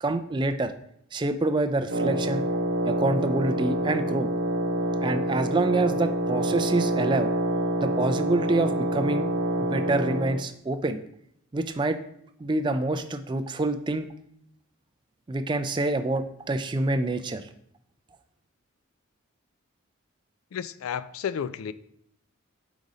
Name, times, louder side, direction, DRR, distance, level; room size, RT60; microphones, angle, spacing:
voice 1, 0.0-0.7 1.1-2.4 2.9-4.3 5.0-7.3 7.8-9.3 9.6-11.0 11.5-12.0 12.4-14.1 15.3-17.5, right 2 dB, 20° right, 0.3 m, -26 dB
Wind instrument woodwind instrument, 1.9-10.4, right 1 dB, 60° right, 0.8 m, -27 dB
voice 2, 20.5-21.7, left 8 dB, 80° left, 0.3 m, -32 dB
5.1 x 4.0 x 4.9 m
head